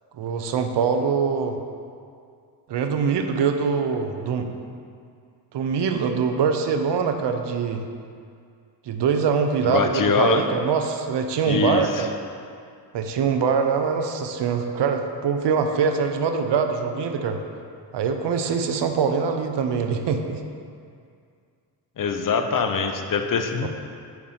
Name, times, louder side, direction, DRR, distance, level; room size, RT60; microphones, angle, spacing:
voice 1, 0.2-1.6 2.7-4.5 5.5-7.9 8.9-12.1 12.9-17.4 17.9-20.4 23.6-23.7, right 6 dB, 65° right, 6 dB, 0.7 m, -23 dB
voice 2, 9.6-10.4 11.4-12.1 22.0-23.7, left 5 dB, 45° left, 6 dB, 0.6 m, -23 dB
4.9 x 4.6 x 5.6 m, 2.3 s
supercardioid pair, 50°, 46 cm